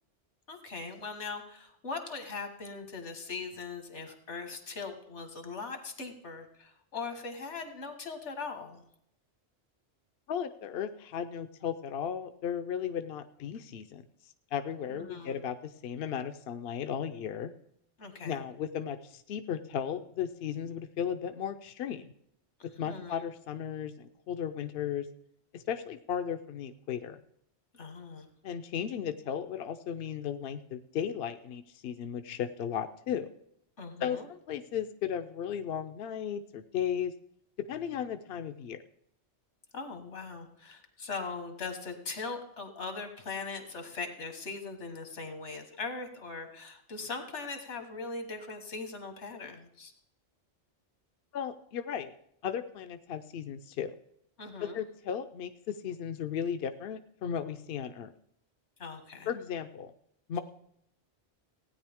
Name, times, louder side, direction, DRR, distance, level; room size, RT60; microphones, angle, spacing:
voice 1, 0.5-8.8 14.9-15.3 18.0-18.4 22.6-23.2 27.7-28.3 33.8-34.3 39.7-49.9 54.4-54.8 58.8-59.3, left 4 dB, 85° left, 6 dB, 1.8 m, -40 dB
voice 2, 10.3-14.0 14.5-17.5 18.2-22.1 22.6-25.1 25.5-27.2 28.4-33.3 34.0-37.1 37.6-38.8 51.3-52.1 52.4-53.9 54.6-58.1 59.3-59.9 60.3-60.4, left 8 dB, 65° left, 8 dB, 0.7 m, -35 dB
16.5 x 9.4 x 3.5 m, 0.73 s
omnidirectional pair, 1.2 m